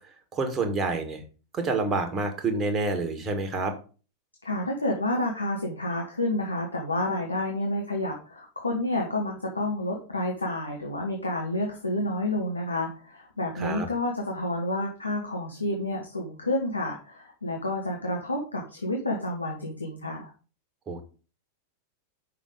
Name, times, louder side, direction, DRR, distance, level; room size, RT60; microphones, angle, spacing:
voice 1, 0.3-1.2 1.5-3.7 13.5-13.9 20.9-21.0, right 3 dB, 20° right, 5 dB, 1.6 m, -28 dB
voice 2, 4.4-20.3, left 1 dB, 80° left, 1 dB, 1.2 m, -29 dB
6.2 x 5.6 x 5.0 m, 0.36 s
figure-of-eight pair, 90°, 0 cm